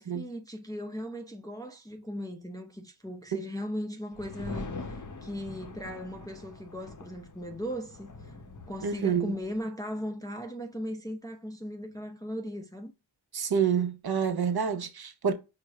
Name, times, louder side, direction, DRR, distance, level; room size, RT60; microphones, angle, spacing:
voice 1, 0.1-8.3 8.7-12.9, equal, 10° left, 0.6 m, -38 dB
sound 1, 4.1-9.6, left 3 dB, 40° left, 0.8 m, -43 dB
voice 2, 8.8-9.3 13.3-15.3, right 7 dB, 50° right, 0.8 m, -28 dB
4.9 x 2.1 x 4.6 m
wide cardioid pair, 65°, 47 cm